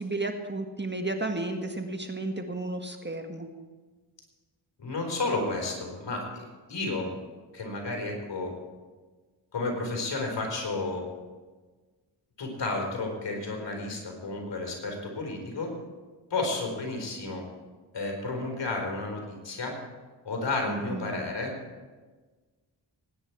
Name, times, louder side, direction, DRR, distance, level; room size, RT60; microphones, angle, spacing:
voice 1, 0.0-3.5 20.7-21.2, right 2 dB, 20° right, 5 dB, 1.7 m, -33 dB
voice 2, 4.8-7.1 7.5-8.5 9.5-11.0 12.4-15.7 16.3-17.4 17.9-19.8 20.2-21.5, left 2 dB, 60° left, 1 dB, 4.5 m, -32 dB
19.5 x 9.8 x 4.7 m, 1.3 s
supercardioid pair, 45°, 48 cm